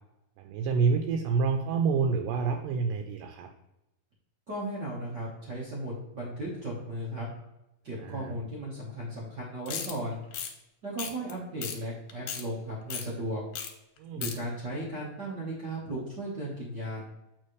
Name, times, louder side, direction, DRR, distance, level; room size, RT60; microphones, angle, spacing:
voice 1, 0.4-3.5 8.0-8.3 14.0-14.3, right 5 dB, 80° right, 5 dB, 2.2 m, -28 dB
voice 2, 4.5-7.3 7.8-10.2 10.8-13.4 14.1-17.0, right 1 dB, 60° right, -5 dB, 1.1 m, -36 dB
sound 1, 9.7-9.9 10.3-10.5 11.0-11.3 11.6-11.8 12.1-12.4 12.9-13.1 13.5-13.7 14.0-14.4, left 8 dB, 80° left, 2.5 m, -35 dB
7.4 x 4.8 x 3.1 m, 0.90 s
omnidirectional pair, 3.9 m